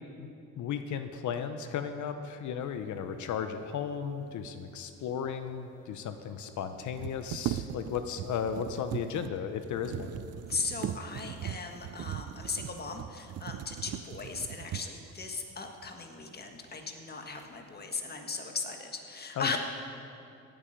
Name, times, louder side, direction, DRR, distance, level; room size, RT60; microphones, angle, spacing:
voice 1, 0.6-10.2 19.4-19.6, left 7 dB, 75° left, 8 dB, 0.8 m, -35 dB
sound 1, 5.3-5.4 5.6-5.7 6.8-15.1 15.8-15.9 16.4-17.0 17.4-17.9, right 11 dB, 55° right, 0.5 m, -39 dB
voice 2, 10.5-19.6, left 4 dB, 30° left, 4 dB, 1.6 m, -37 dB
16.5 x 8.8 x 5.1 m, 2.6 s
cardioid pair, 90°, 30 cm